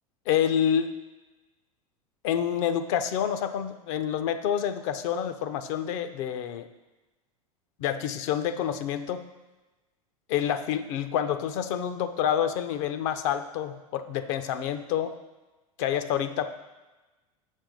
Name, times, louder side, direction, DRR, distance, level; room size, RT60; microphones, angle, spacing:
voice 1, 0.3-0.9 2.2-6.7 7.8-9.2 10.3-15.2 15.8-16.6, left 9 dB, 55° left, 10 dB, 0.7 m, -28 dB
7.2 x 5.4 x 5.3 m, 1.1 s
hypercardioid pair, 85°, 19 cm